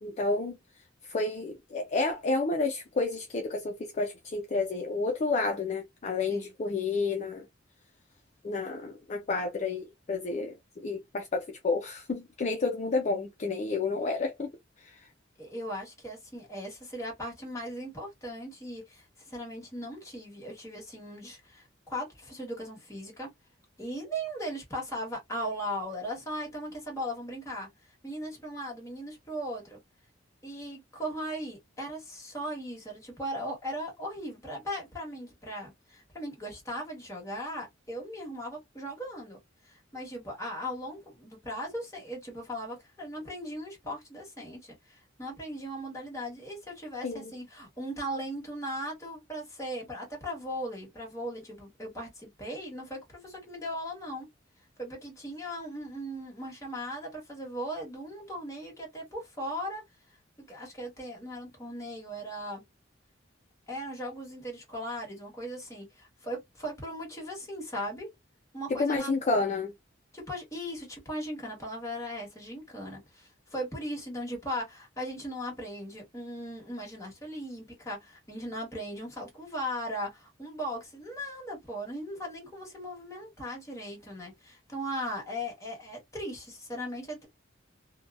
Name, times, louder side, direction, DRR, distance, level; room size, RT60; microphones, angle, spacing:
voice 1, 0.0-0.6 1.0-7.4 8.4-14.5 14.8-15.1 47.0-47.3 68.7-69.7, left 3 dB, 35° left, 0.4 m, -30 dB
voice 2, 15.4-23.3 23.8-27.7 28.0-29.8 30.4-39.4 39.6-54.3 54.8-59.8 60.5-62.6 63.7-68.1 68.5-69.1 70.1-87.3, equal, 15° left, 1.3 m, -38 dB
2.7 x 2.2 x 2.3 m
head